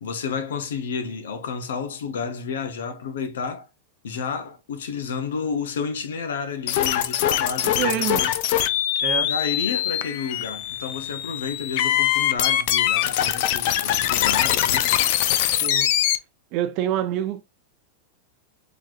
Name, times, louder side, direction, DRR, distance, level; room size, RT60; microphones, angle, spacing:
voice 1, 0.0-3.7 4.0-8.3 9.2-14.9, left 5 dB, 90° left, 0.9 m, -31 dB
sound 1, 6.7-16.2, left 12 dB, 55° left, 0.4 m, -23 dB
voice 2, 7.6-8.2 9.0-9.3 15.6-15.9 16.5-17.4, right 12 dB, 45° right, 0.6 m, -26 dB
3.9 x 3.1 x 2.4 m
supercardioid pair, 135°, 0 cm